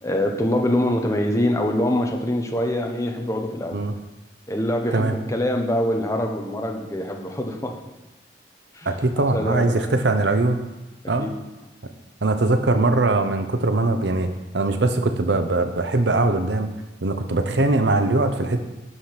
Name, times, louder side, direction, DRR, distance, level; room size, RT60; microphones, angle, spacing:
voice 1, 0.0-3.8 4.5-7.7 8.7-8.9 9.2-9.7 11.2-11.3, left 1 dB, 15° left, 3 dB, 1.1 m, -24 dB
voice 2, 8.9-10.6 11.1-11.3 12.2-16.7 17.0-18.6, right 2 dB, 75° right, 7 dB, 0.9 m, -21 dB
11.5 x 5.1 x 6.0 m, 1.0 s
head